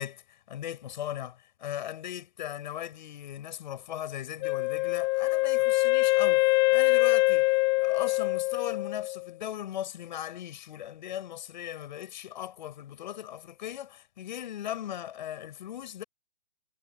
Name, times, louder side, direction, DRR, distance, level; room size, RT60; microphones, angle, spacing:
voice 1, 0.0-7.5 7.8-16.0, left 11 dB, 50° left, 7.6 m, -38 dB
Wind instrument woodwind instrument, 4.4-9.3, left 26 dB, 25° left, 1.1 m, -24 dB
hypercardioid pair, 145°, 29 cm